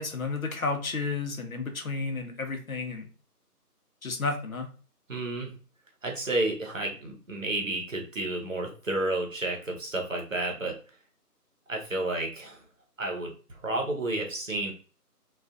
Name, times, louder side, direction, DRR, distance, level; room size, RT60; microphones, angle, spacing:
voice 1, 0.0-3.1 4.0-4.7, left 3 dB, 60° left, 4 dB, 0.7 m, -32 dB
voice 2, 5.1-5.5 6.0-10.8 11.7-12.6 13.0-14.7, right 2 dB, 55° right, 1 dB, 0.8 m, -31 dB
2.4 x 2.3 x 2.4 m, 0.38 s
figure-of-eight pair, 175°, 47 cm